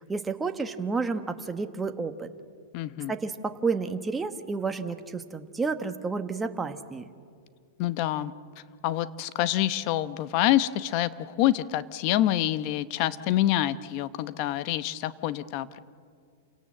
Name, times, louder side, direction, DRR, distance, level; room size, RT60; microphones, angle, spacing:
voice 1, 0.0-2.3 3.1-7.1, right 4 dB, 10° right, 7 dB, 1.2 m, -31 dB
voice 2, 2.7-3.1 7.8-8.3 8.8-15.8, left 13 dB, 45° left, 15 dB, 0.9 m, -26 dB
28.5 x 17.5 x 7.6 m, 2.1 s
hypercardioid pair, 130°, 0 cm